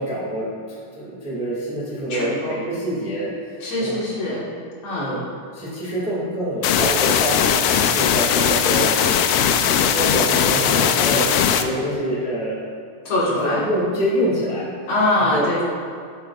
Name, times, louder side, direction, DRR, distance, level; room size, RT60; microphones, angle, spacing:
voice 1, 0.0-4.0 4.9-5.2 5.5-9.0 9.4-12.6 13.3-14.9 15.2-15.5, equal, 5° right, -6 dB, 1.4 m, -26 dB
voice 2, 2.1-2.6 3.6-4.5 4.8-5.2 13.0-13.7 14.9-15.6, left 1 dB, 60° left, -6 dB, 2.5 m, -22 dB
sound 1, 6.6-11.6, left 8 dB, 80° left, 1.7 m, -19 dB
12.5 x 8.0 x 2.4 m, 2.3 s
omnidirectional pair, 3.5 m